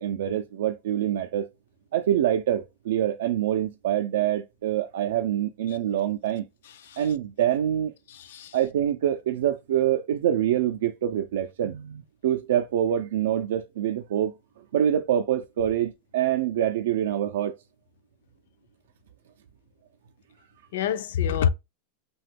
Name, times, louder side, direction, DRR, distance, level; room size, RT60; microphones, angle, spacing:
voice 1, 0.0-1.5 1.9-6.5 7.0-7.9 8.5-14.3 14.7-17.5, right 10 dB, 75° right, 0.4 m, -25 dB
voice 2, 6.7-7.0 8.1-8.6 20.7-21.5, left 9 dB, 70° left, 0.3 m, -27 dB
2.8 x 2.2 x 3.3 m
supercardioid pair, 175°, 0 cm